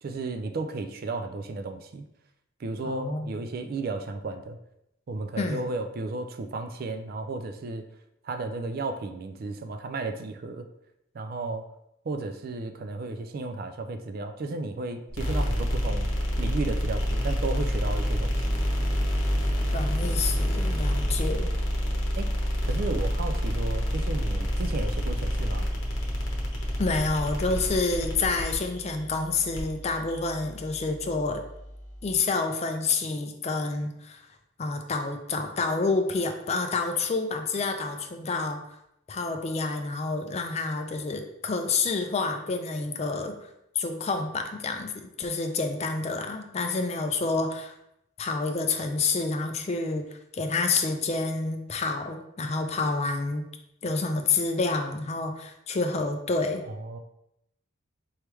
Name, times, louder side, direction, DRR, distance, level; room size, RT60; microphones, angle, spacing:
voice 1, 0.0-2.0 2.6-4.6 5.1-7.8 8.2-10.7 11.1-11.7 12.1-16.1 16.4-18.6 22.2-22.3 22.6-25.7 56.7-57.0, right 3 dB, 45° right, 7 dB, 0.3 m, -33 dB
voice 2, 2.8-3.4 5.4-5.6 19.7-21.5 26.8-31.4 32.0-34.3 34.6-38.6 39.1-43.5 43.8-47.7 48.2-53.4 53.8-56.6, left 3 dB, 30° left, 5 dB, 0.4 m, -28 dB
sound 1, 15.1-32.2, equal, 70° left, 1.0 m, -28 dB
4.6 x 3.4 x 3.1 m, 0.81 s
head